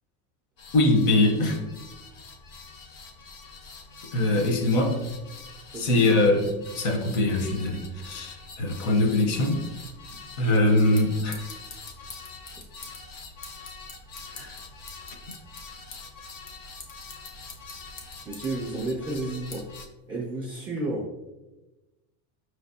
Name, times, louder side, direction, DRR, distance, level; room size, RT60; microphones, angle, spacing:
sound 1, 0.6-19.9, left 3 dB, 45° left, 0.6 m, -45 dB
voice 1, 0.7-1.6 4.1-5.0 5.7-6.5 6.7-9.6 10.4-11.4 14.3-14.6, left 2 dB, 65° left, 3 dB, 1.0 m, -22 dB
voice 2, 5.7-6.2 12.5-12.6 18.2-19.7 20.1-21.3, right 2 dB, 10° right, -8 dB, 0.3 m, -32 dB
sound 2, 10.3-20.8, left 4 dB, 85° left, 1.1 m, -48 dB
5.1 x 3.3 x 2.7 m, 1.1 s
cardioid pair, 155°, 47 cm